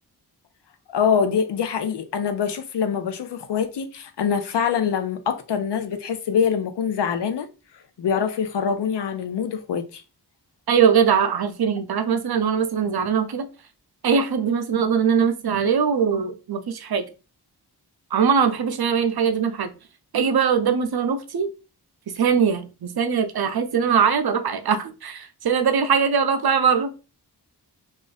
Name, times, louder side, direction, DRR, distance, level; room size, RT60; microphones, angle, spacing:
voice 1, 0.9-7.5 8.0-10.0, left 7 dB, 85° left, 0.6 m, -24 dB
voice 2, 10.7-13.5 14.0-17.0 18.1-19.7 20.1-21.5 22.2-26.9, right 6 dB, 65° right, 0.6 m, -21 dB
2.5 x 2.4 x 4.0 m
wide cardioid pair, 70°, 40 cm